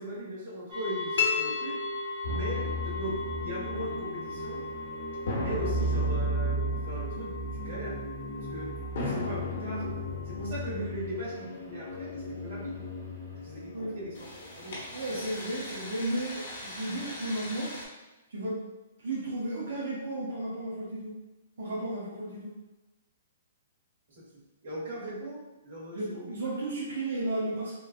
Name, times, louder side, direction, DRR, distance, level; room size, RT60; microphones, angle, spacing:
voice 1, 0.0-1.8 2.3-4.7 5.3-8.0 8.4-8.7 9.0-9.9 10.2-12.8 13.4-14.8 24.2-26.3, right 1 dB, 55° right, -7 dB, 1.4 m, -39 dB
sound 1, 0.7-10.6, equal, 20° right, 0.6 m, -39 dB
sound 2, 1.2-2.7, left 7 dB, 85° left, 0.6 m, -31 dB
sound 3, 2.2-17.8, equal, 50° left, 0.8 m, -35 dB
voice 2, 14.9-17.7 18.3-18.6 19.0-21.1 21.6-22.5 25.9-27.7, right 1 dB, 80° right, -8 dB, 0.8 m, -33 dB
3.1 x 2.4 x 2.4 m, 1.0 s
hypercardioid pair, 170°, 0 cm